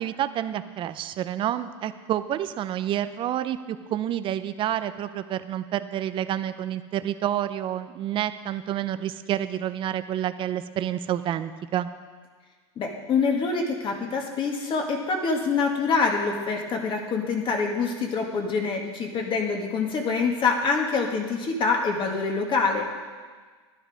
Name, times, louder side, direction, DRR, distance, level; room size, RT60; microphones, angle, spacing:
voice 1, 0.0-11.9, right 11 dB, 35° right, 12 dB, 0.6 m, -29 dB
voice 2, 12.8-22.8, left 4 dB, 35° left, 2 dB, 2.0 m, -25 dB
11.0 x 11.0 x 5.1 m, 1.5 s
hypercardioid pair, 110°, 14 cm